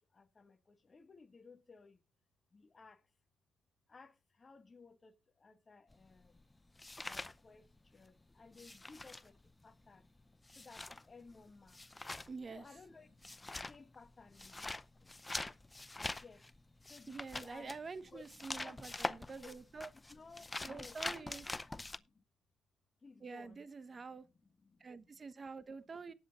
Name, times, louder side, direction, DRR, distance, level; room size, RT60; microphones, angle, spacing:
voice 1, 0.0-2.0 2.5-3.0 3.9-6.4 7.0-9.4 9.6-10.1 10.5-11.8 12.5-14.7 15.0-15.1 16.0-16.5 16.9-17.7 18.0-18.3 18.5-19.1 19.4-19.6 19.9-22.2 23.0-23.7 24.2-24.3 24.6-25.2, left 4 dB, 30° left, 1.7 m, -59 dB
sound 1, 5.9-8.1 8.3-22.0, left 2 dB, 15° left, 0.6 m, -45 dB
voice 2, 12.3-12.6 17.1-19.9 20.6-21.4 23.2-24.3 24.8-26.1, right 4 dB, 35° right, 1.1 m, -47 dB
18.5 x 7.9 x 2.5 m
cardioid pair, 90°, 0 cm